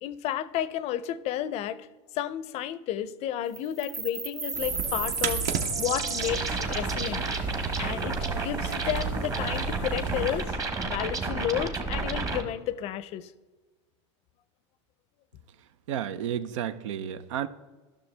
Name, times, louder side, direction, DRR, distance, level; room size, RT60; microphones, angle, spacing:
voice 1, 0.0-1.8 2.1-5.5 5.8-7.2 7.8-10.6 10.8-13.3, left 11 dB, 40° left, 0.5 m, -32 dB
sound 1, 3.5-12.4, right 3 dB, 20° right, 1.0 m, -31 dB
sound 2, 4.5-10.4, right 6 dB, 50° right, 0.8 m, -34 dB
voice 2, 15.9-17.5, right 9 dB, 85° right, 0.6 m, -32 dB
12.0 x 6.3 x 3.3 m
supercardioid pair, 130°, 16 cm